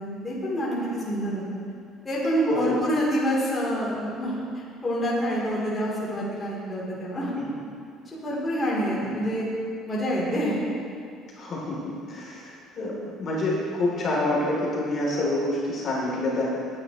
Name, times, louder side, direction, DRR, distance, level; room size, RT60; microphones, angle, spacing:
voice 1, 0.0-1.6 2.0-4.4 4.8-7.3 8.1-9.5 9.9-10.6, equal, 15° left, -6 dB, 3.4 m, -27 dB
voice 2, 11.4-11.8 12.1-12.9 13.2-16.5, left 2 dB, 40° left, -5 dB, 3.2 m, -27 dB
19.5 x 10.0 x 3.1 m, 2.3 s
cardioid pair, 140°, 0 cm